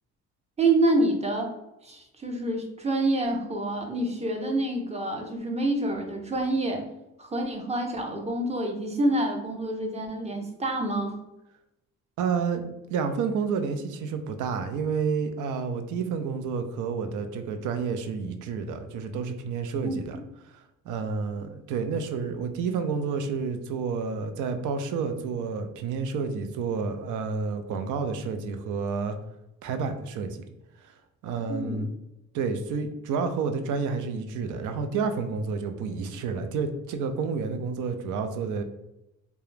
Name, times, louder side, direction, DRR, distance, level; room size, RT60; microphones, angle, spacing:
voice 1, 0.6-1.5 1.8-6.8 7.2-11.2 19.8-20.0 31.5-31.8, right 2 dB, 20° right, 2 dB, 0.5 m, -27 dB
voice 2, 12.2-20.2 20.4-29.2 29.6-30.5 30.8-30.9 31.2-31.9 32.3-38.6, right 5 dB, 80° right, 8 dB, 0.5 m, -30 dB
2.3 x 2.0 x 3.1 m, 0.90 s
cardioid pair, 90°, 30 cm